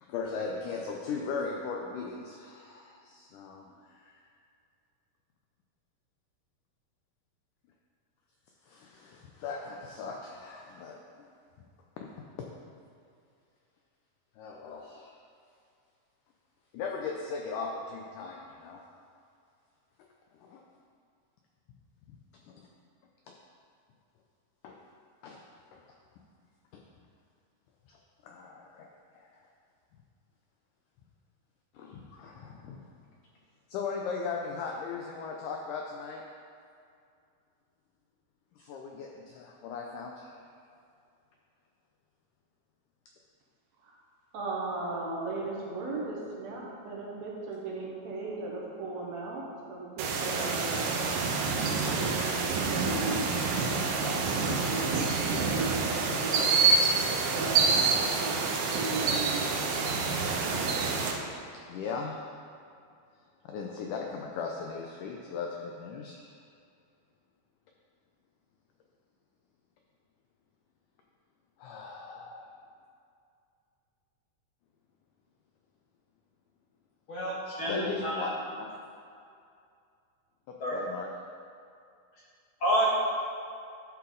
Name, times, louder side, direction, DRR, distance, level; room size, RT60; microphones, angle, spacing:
voice 1, 0.0-4.2 8.6-11.0 12.0-12.1 14.4-15.2 16.7-18.8 20.3-20.6 22.4-22.6 24.6-24.8 25.2-25.4 25.7-25.8 26.7-26.8 27.9-28.9 29.1-29.4 31.7-32.8 33.7-36.2 38.6-40.5 61.7-62.4 63.4-66.4 71.6-72.5 77.6-78.3 78.6-78.8 80.7-81.1, left 5 dB, 85° left, 0 dB, 1.8 m, -38 dB
voice 2, 44.3-50.9 51.9-53.2 53.5-56.5 57.1-58.4 58.7-59.6, right 3 dB, 60° right, -4 dB, 2.0 m, -37 dB
sound 1, 50.0-61.1, right 4 dB, 85° right, 2.7 m, -27 dB
voice 3, 77.1-78.2 80.6-80.8 82.6-82.9, equal, 50° left, -7 dB, 1.8 m, -29 dB
12.0 x 5.7 x 3.8 m, 2.4 s
omnidirectional pair, 4.4 m